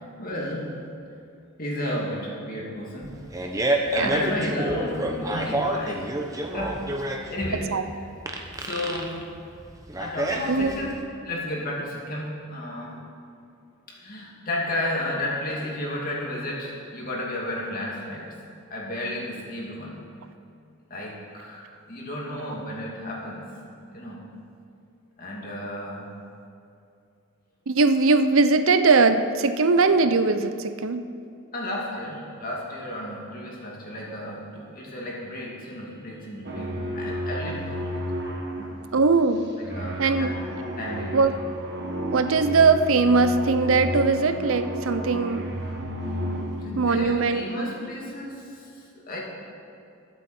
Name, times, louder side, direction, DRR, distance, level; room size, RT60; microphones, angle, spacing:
voice 1, 0.2-0.8 1.6-3.1 4.0-6.1 6.5-6.8 7.3-7.7 8.5-9.2 10.0-11.0 11.2-12.9 13.9-18.3 18.7-20.0 20.9-23.5 23.9-24.3 25.2-26.1 31.5-38.0 38.5-38.8 39.6-40.3 40.8-41.3 46.5-49.2, left 1 dB, 40° left, -3 dB, 2.6 m, -33 dB
Fart, 3.0-11.0, right 1 dB, 15° right, 0.8 m, -28 dB
voice 2, 27.7-31.1 38.9-39.5 40.0-40.4 41.1-41.3 42.1-45.6 46.8-47.7, right 4 dB, 70° right, 10 dB, 0.6 m, -20 dB
sound 1, 36.4-47.0, equal, 50° right, 1.4 m, -32 dB
21.5 x 7.9 x 4.4 m, 2.5 s
head